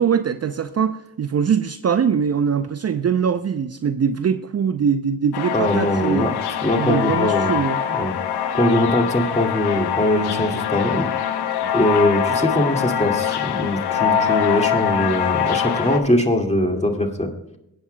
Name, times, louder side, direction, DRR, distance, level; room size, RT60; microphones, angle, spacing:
voice 1, 0.0-6.3 6.8-7.8, right 7 dB, 40° right, 10 dB, 0.6 m, -22 dB
sound 1, 5.3-16.0, left 9 dB, 80° left, 0.9 m, -23 dB
voice 2, 5.5-6.3 6.6-7.5 7.9-8.1 8.5-11.1 11.7-17.3, left 1 dB, 15° left, 3 dB, 2.2 m, -21 dB
22.0 x 8.7 x 2.2 m, 0.82 s
supercardioid pair, 40°, 38 cm